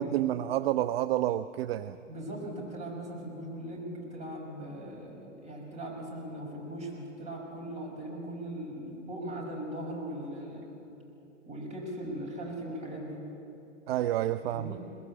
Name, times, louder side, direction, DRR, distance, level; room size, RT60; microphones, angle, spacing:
voice 1, 0.0-2.0 13.9-14.8, right 13 dB, 50° right, 15 dB, 0.6 m, -29 dB
voice 2, 2.1-10.7 11.5-13.2 14.4-14.8, right 1 dB, 15° right, -1 dB, 5.9 m, -39 dB
22.0 x 20.5 x 8.7 m, 2.9 s
hypercardioid pair, 130°, 38 cm